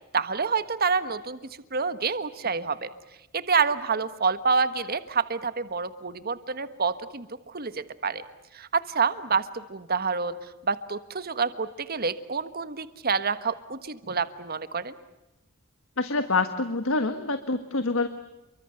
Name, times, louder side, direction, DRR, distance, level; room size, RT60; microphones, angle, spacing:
voice 1, 0.1-1.4 1.7-2.9 3.3-8.2 8.5-10.3 10.6-14.9, right 5 dB, 50° right, 12 dB, 1.4 m, -27 dB
voice 2, 16.0-18.1, left 3 dB, 85° left, 9 dB, 1.5 m, -26 dB
29.0 x 24.0 x 7.9 m, 0.97 s
head